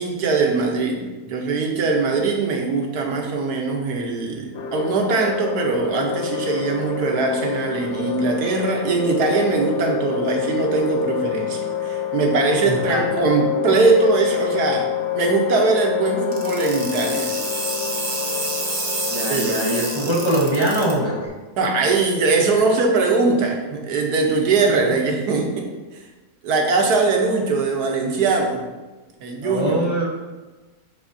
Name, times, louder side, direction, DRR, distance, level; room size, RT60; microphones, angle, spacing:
voice 1, 0.0-17.3 19.3-19.6 21.6-25.7 26.4-28.6 29.2-29.7, right 4 dB, 65° right, 1 dB, 1.4 m, -21 dB
sound 1, 4.5-21.3, left 9 dB, 70° left, 1.0 m, -27 dB
voice 2, 12.7-13.0 19.1-21.3 29.4-30.1, right 1 dB, 35° left, -5 dB, 0.4 m, -22 dB
sound 2, 16.3-20.9, right 3 dB, 40° right, 0.8 m, -28 dB
10.5 x 3.5 x 2.7 m, 1.2 s
omnidirectional pair, 1.9 m